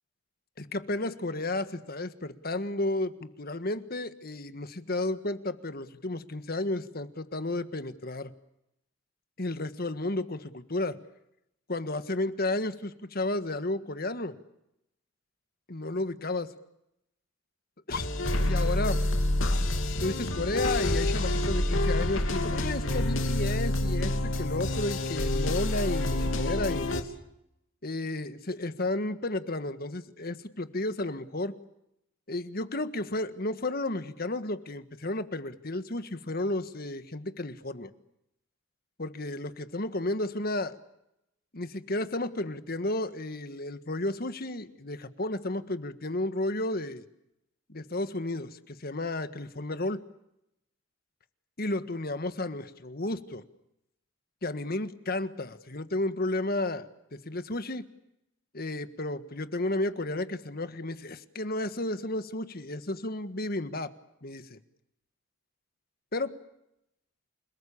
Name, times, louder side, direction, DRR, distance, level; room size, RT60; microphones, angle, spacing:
voice 1, 0.6-8.3 9.4-11.0 11.7-14.4 15.7-16.5 17.9-18.1 18.4-19.0 20.0-27.1 27.8-31.6 32.3-37.9 39.0-40.8 41.5-47.0 47.7-50.0 51.6-53.4 54.4-56.9 57.2-57.9 58.5-63.9 64.2-64.6 66.1-66.4, left 2 dB, 50° left, 11 dB, 1.6 m, -32 dB
sound 1, 17.9-27.0, left 1 dB, 85° left, 3.2 m, -27 dB
30.0 x 20.0 x 8.6 m, 0.83 s
head